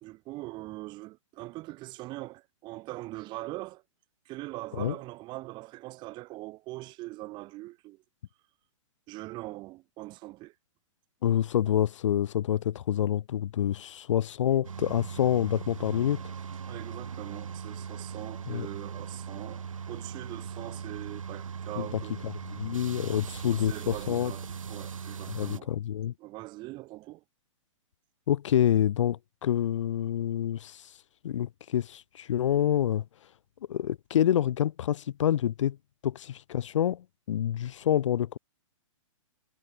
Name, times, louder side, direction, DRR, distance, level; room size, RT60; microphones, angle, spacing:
voice 1, 0.0-3.8 4.2-8.0 9.1-10.5 16.7-22.2 23.1-25.7 26.2-27.2, right 19 dB, 25° right, 1.1 m, -42 dB
voice 2, 11.2-16.2 18.5-18.7 21.8-24.3 25.3-26.1 28.3-30.9 31.2-33.0 33.7-35.8 36.0-38.4, left 10 dB, 65° left, 0.7 m, -27 dB
sound 1, 14.6-25.6, right 6 dB, 90° right, 1.1 m, -39 dB
hypercardioid pair, 135°, 17 cm